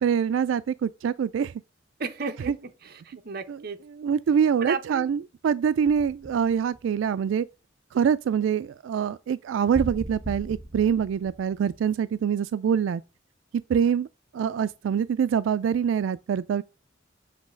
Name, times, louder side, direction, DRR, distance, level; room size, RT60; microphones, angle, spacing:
voice 1, 0.0-1.5 3.5-3.6 4.0-7.5 7.9-13.0 13.7-14.1 14.3-16.6, right 7 dB, 85° right, 0.3 m, -25 dB
voice 2, 2.0-3.8 4.6-5.0, right 4 dB, 55° right, 0.9 m, -34 dB
sound 1, 5.9-7.3 9.7-12.3, right 1 dB, ahead, 1.0 m, -38 dB
7.5 x 3.2 x 6.1 m
head